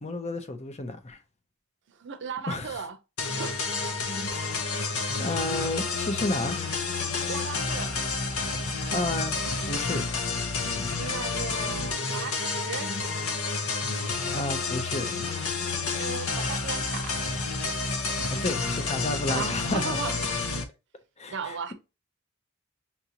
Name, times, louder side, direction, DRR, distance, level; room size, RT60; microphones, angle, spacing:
voice 1, 0.0-1.2 2.5-2.9 5.1-6.6 8.9-10.0 14.2-15.2 18.3-20.0 21.2-21.7, left 2 dB, 30° left, 0.7 m, -31 dB
voice 2, 2.0-3.0 3.2-3.6 7.3-7.9 11.0-12.9 16.0-17.2 19.3-20.4 21.3-21.7, right 5 dB, 55° right, 0.6 m, -36 dB
sound 1, 3.2-20.6, left 4 dB, 80° left, 0.8 m, -30 dB
5.8 x 2.6 x 2.8 m
head